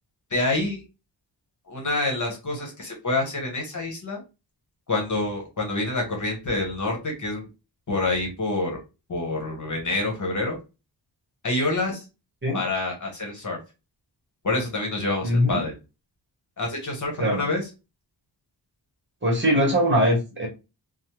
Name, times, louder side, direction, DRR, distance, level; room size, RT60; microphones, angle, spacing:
voice 1, 0.3-0.8 1.7-4.2 4.9-7.5 7.9-8.8 9.1-10.6 11.4-12.0 12.5-13.6 14.4-15.7 16.6-17.7, left 2 dB, 45° left, 1 dB, 1.0 m, -27 dB
voice 2, 15.2-15.6 17.2-17.4 19.2-20.5, equal, 30° right, -1 dB, 1.0 m, -21 dB
3.2 x 2.0 x 2.9 m, 0.28 s
wide cardioid pair, 170°, 41 cm